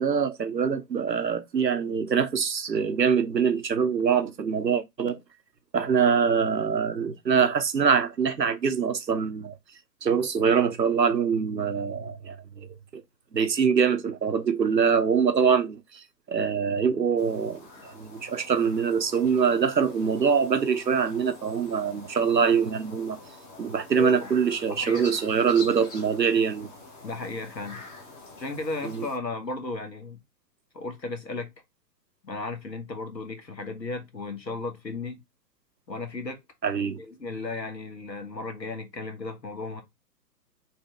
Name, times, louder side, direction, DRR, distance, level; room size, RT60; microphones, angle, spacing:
voice 1, 0.0-5.2 5.7-9.5 10.0-13.0 13.3-23.2 23.6-26.7 28.8-29.1 36.6-37.0, right 6 dB, 85° right, 0.8 m, -24 dB
sound 1, 17.2-29.2, left 2 dB, 15° left, 0.9 m, -46 dB
voice 2, 24.0-24.3 24.7-25.2 27.0-27.9 28.4-30.2 30.7-31.5 32.2-35.2 35.9-36.4 37.0-39.8, left 3 dB, 85° left, 1.3 m, -35 dB
4.1 x 2.8 x 3.6 m
figure-of-eight pair, 115°, 50 cm